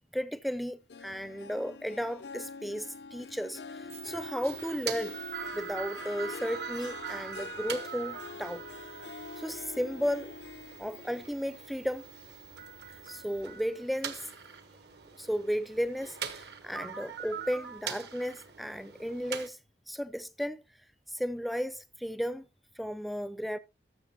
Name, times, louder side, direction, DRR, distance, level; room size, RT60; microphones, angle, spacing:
voice 1, 0.1-5.2 5.5-8.6 9.0-9.1 9.4-10.3 10.8-12.1 13.1-14.3 15.2-19.6 19.9-20.6 21.1-22.5 22.8-23.6, equal, ahead, 0.4 m, -34 dB
Harp, 0.9-13.6 14.0-14.4 14.9-15.0, left 4 dB, 65° left, 0.4 m, -46 dB
sound 1, 3.9-13.4, right 9 dB, 35° right, 0.8 m, -52 dB
sound 2, 4.4-19.5, right 7 dB, 65° right, 1.3 m, -42 dB
13.0 x 7.1 x 3.0 m
head